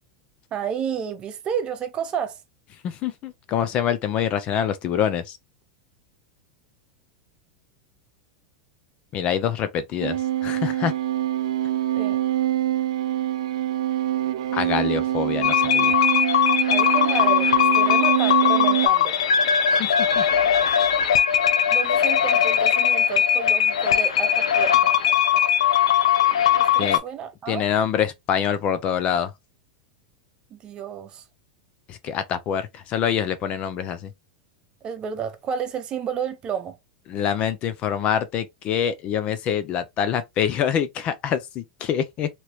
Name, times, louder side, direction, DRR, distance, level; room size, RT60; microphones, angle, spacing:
voice 1, 0.5-2.4 11.9-12.2 16.7-19.2 21.7-24.9 26.7-27.7 30.5-31.2 34.8-36.7, right 8 dB, 30° right, 0.9 m, -31 dB
voice 2, 2.8-5.4 9.1-10.9 14.5-15.9 19.8-20.2 26.8-27.0 27.5-29.3 31.9-34.1 37.1-42.3, left 8 dB, 40° left, 0.5 m, -25 dB
sound 1, 10.0-18.9, right 13 dB, 80° right, 0.4 m, -24 dB
sound 2, 15.4-27.0, left 9 dB, 90° left, 0.5 m, -20 dB
3.0 x 2.9 x 2.9 m
supercardioid pair, 125°, 3 cm